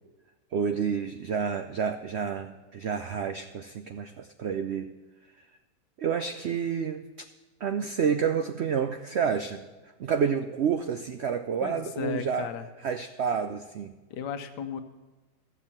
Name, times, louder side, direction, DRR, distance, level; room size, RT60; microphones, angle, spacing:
voice 1, 0.5-4.9 6.0-7.1 7.6-9.7 10.0-12.5 12.8-13.9, right 7 dB, 80° right, 8 dB, 0.6 m, -29 dB
voice 2, 11.6-12.7 14.1-14.8, left 8 dB, 85° left, 8 dB, 1.5 m, -35 dB
14.0 x 7.3 x 7.1 m, 1.1 s
omnidirectional pair, 1.8 m